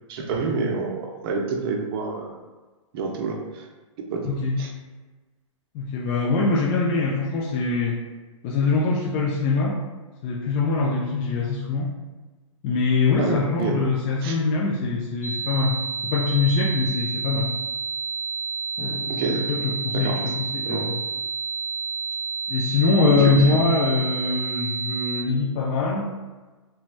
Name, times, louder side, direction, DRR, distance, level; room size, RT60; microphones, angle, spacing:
voice 1, 0.1-2.4 2.9-3.7 4.1-4.3 4.6-4.7 13.2-13.8 14.2-14.4 19.1-19.6 19.9-20.2 20.6-20.9 23.0-23.6 24.2-24.3, right 4 dB, 45° right, 1 dB, 0.6 m, -28 dB
voice 2, 4.2-4.6 5.7-8.0 8.4-9.8 10.2-11.9 12.6-15.8 16.0-17.5 18.8-21.0 22.5-26.1, left 4 dB, 30° left, -4 dB, 0.4 m, -23 dB
sound 1, 15.2-25.2, right 5 dB, 20° right, 0.8 m, -30 dB
3.0 x 2.2 x 2.4 m, 1.2 s
hypercardioid pair, 130°, 17 cm